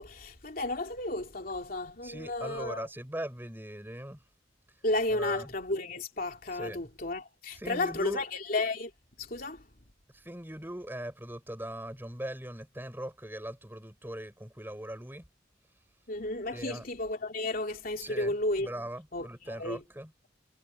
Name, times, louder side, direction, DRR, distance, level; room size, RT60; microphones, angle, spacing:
voice 1, 0.0-2.9 4.8-8.9 9.2-9.6 16.1-18.7 19.1-19.2 19.6-19.8, left 2 dB, 50° left, 3.0 m, -33 dB
voice 2, 2.0-4.2 5.1-5.5 6.5-6.9 7.5-8.3 10.1-15.3 16.5-16.9 18.0-20.1, right 1 dB, 10° right, 5.9 m, -40 dB
head